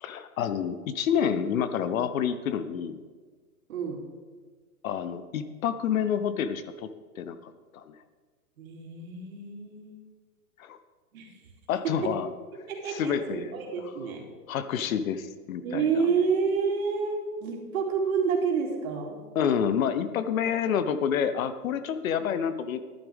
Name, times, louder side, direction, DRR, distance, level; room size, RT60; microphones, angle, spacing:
voice 1, 0.0-3.0 4.8-6.9 7.2-8.0 10.6-10.8 11.7-12.3 12.9-13.6 14.5-16.0 19.3-22.8, left 8 dB, 60° left, 12 dB, 0.9 m, -28 dB
voice 2, 3.7-4.0 8.6-10.0 11.1-11.3 11.8-12.1 12.7-14.2 15.6-19.2, right 5 dB, 60° right, 0 dB, 3.0 m, -29 dB
13.5 x 11.0 x 3.5 m, 1.4 s
hypercardioid pair, 145°, 46 cm